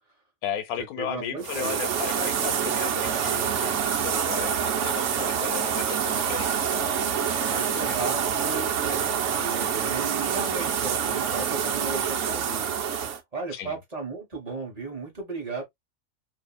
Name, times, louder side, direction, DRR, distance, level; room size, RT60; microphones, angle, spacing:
voice 1, 0.4-7.0 7.4-7.9 8.5-8.8 13.5-13.8, left 9 dB, 90° left, 1.1 m, -35 dB
voice 2, 1.0-1.8 7.5-15.6, right 3 dB, 30° right, 1.0 m, -35 dB
sound 1, 1.4-13.2, right 8 dB, 65° right, 0.8 m, -26 dB
2.6 x 2.6 x 2.2 m
omnidirectional pair, 1.5 m